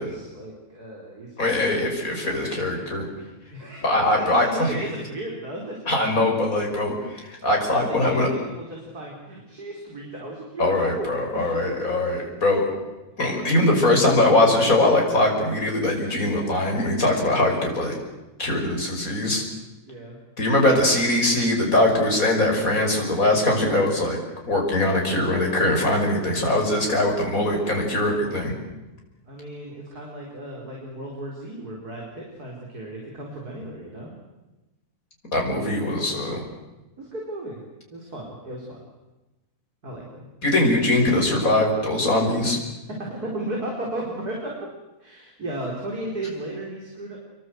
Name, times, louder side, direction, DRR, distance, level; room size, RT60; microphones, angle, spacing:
voice 1, 0.0-1.8 3.5-3.8 4.1-5.8 7.7-11.8 19.9-20.2 29.3-34.1 37.0-37.6 37.9-38.8 39.8-40.3 43.0-44.6 45.0-47.2, right 1 dB, 85° right, -1 dB, 5.2 m, -35 dB
voice 2, 1.4-3.1 3.8-4.4 4.8-4.9 5.9-8.3 10.6-12.7 13.2-18.0 18.4-19.4 20.4-24.2 24.5-28.5 35.3-36.4 40.4-42.6, left 1 dB, 65° left, 1 dB, 6.2 m, -21 dB
27.5 x 23.0 x 8.0 m, 1.1 s
omnidirectional pair, 1.6 m